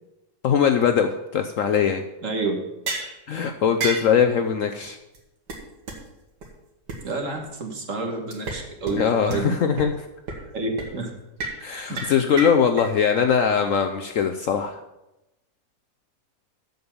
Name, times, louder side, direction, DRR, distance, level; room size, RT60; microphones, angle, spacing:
voice 1, 0.4-2.0 3.3-5.0 8.9-9.9 11.6-14.8, left 7 dB, 65° left, 6 dB, 0.8 m, -21 dB
voice 2, 2.2-2.6 7.0-9.6 10.5-11.1 11.9-12.1, right 3 dB, 50° right, 2 dB, 1.8 m, -29 dB
sound 1, 2.9-3.1 3.8-4.1 4.8-4.9 5.1-5.2 5.5-5.6 5.9-6.0 6.4-6.5 6.9-7.0 8.3-8.6 8.9-9.0 9.3-9.4 9.8-9.9 10.3-10.5 10.8-10.9 11.4-11.6 12.0-12.9, right 3 dB, 80° right, 2.1 m, -30 dB
7.8 x 6.9 x 7.1 m, 0.95 s
omnidirectional pair, 1.8 m